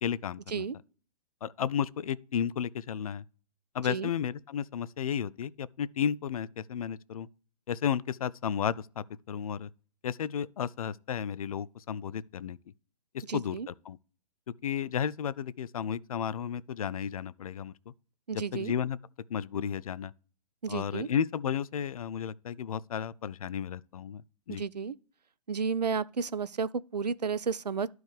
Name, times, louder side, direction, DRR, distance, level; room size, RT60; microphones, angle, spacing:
voice 1, 0.0-0.7 1.4-3.2 3.7-7.3 7.7-9.7 10.0-12.6 13.1-14.0 14.6-17.7 18.3-19.0 19.3-20.1 20.7-24.2 24.5-24.6, left 8 dB, 60° left, 0.4 m, -33 dB
voice 2, 13.3-13.7 18.3-18.7 20.6-21.1 24.5-24.9 25.5-27.9, right 5 dB, 85° right, 0.4 m, -32 dB
12.5 x 4.6 x 3.3 m
figure-of-eight pair, 115°, 20 cm